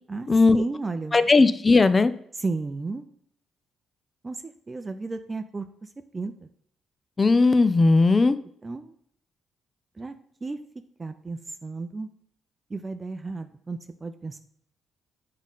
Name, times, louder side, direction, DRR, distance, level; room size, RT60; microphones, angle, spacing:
voice 1, 0.1-1.3 2.4-3.0 4.2-6.5 8.6-8.9 10.0-10.1 10.4-10.6 11.0-12.1 12.7-14.4, right 3 dB, 25° right, 8 dB, 0.5 m, -33 dB
voice 2, 1.1-2.1 7.2-8.4, left 3 dB, 25° left, 13 dB, 0.5 m, -17 dB
7.3 x 3.8 x 5.5 m, 0.67 s
cardioid pair, 90°, 0 cm